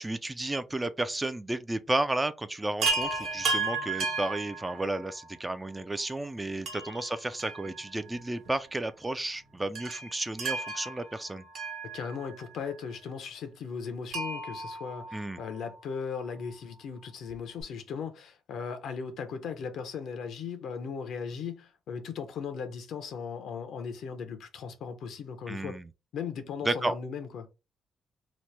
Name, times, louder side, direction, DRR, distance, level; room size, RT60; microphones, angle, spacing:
voice 1, 0.0-11.4 15.1-15.4 25.5-25.9 26.6-26.9, right 2 dB, 15° right, 0.3 m, -32 dB
Chime, 2.8-5.2 6.7-8.2 8.5-8.6 9.8-12.5 14.1-15.7 17.3-17.4 17.6-17.7, right 3 dB, 70° right, 1.0 m, -34 dB
voice 2, 11.9-25.8 26.1-27.5, left 6 dB, 75° left, 0.7 m, -37 dB
3.0 x 2.1 x 3.2 m
cardioid pair, 90°, 0 cm